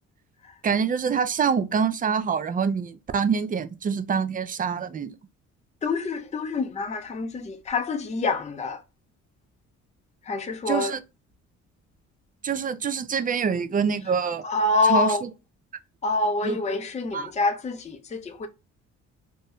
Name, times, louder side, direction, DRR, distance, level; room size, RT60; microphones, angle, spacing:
voice 1, 0.6-5.1 10.7-11.0 12.4-14.4 14.9-15.3 16.4-16.6 17.1-17.3, right 6 dB, 30° right, 0.4 m, -25 dB
voice 2, 5.8-8.8 10.3-10.9 14.4-15.2 16.0-18.5, left 3 dB, 25° left, 0.5 m, -26 dB
2.7 x 2.2 x 3.4 m
cardioid pair, 90°, 30 cm